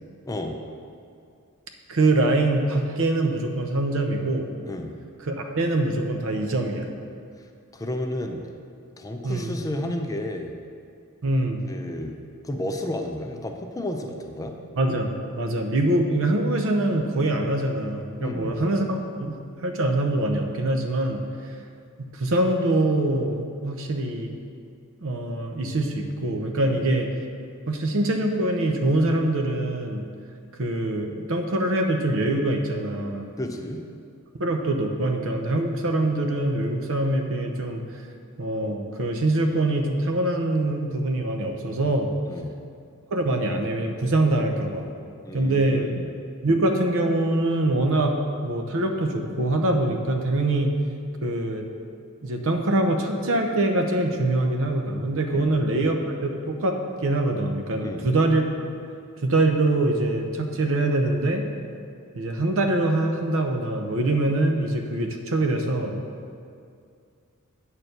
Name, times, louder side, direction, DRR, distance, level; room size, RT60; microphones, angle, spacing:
voice 1, 0.3-0.6 4.7-4.9 7.7-8.4 9.0-10.5 11.7-12.2 12.4-14.5 18.2-18.5 26.6-26.8 33.4-33.8 42.2-42.5 45.2-46.1 55.3-55.6 57.8-58.1, left 1 dB, 15° left, 4 dB, 0.6 m, -32 dB
voice 2, 1.9-4.5 5.3-6.9 9.2-9.5 11.2-11.6 14.8-21.2 22.1-24.4 25.0-27.1 27.7-30.1 30.6-33.3 34.4-37.8 38.4-42.1 43.1-44.9 45.3-45.9 46.4-48.2 48.4-50.7 51.2-51.7 52.2-58.4 59.2-61.5 62.1-66.0, right 2 dB, 65° right, 4 dB, 0.8 m, -24 dB
8.8 x 4.5 x 6.6 m, 2.3 s
head